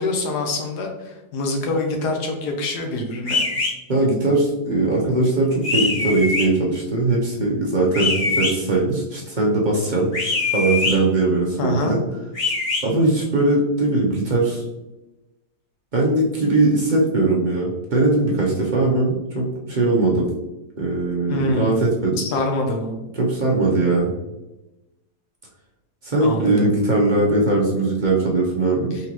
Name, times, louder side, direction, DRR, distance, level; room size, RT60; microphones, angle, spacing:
voice 1, 0.0-3.4 11.6-11.9 21.3-21.8 22.2-22.9 26.2-26.7 28.9-29.0, left 2 dB, 80° left, 3 dB, 1.4 m, -25 dB
sound 1, 3.3-3.7 5.6-6.5 7.9-8.5 10.1-10.9 12.3-12.8, left 3 dB, 35° left, 1.2 m, -22 dB
voice 2, 3.9-10.1 10.5-12.0 12.8-14.6 15.9-20.3 20.8-22.2 23.1-24.1 26.0-28.9, right 2 dB, 55° right, -3 dB, 0.5 m, -20 dB
3.9 x 3.7 x 2.9 m, 1.0 s
omnidirectional pair, 1.7 m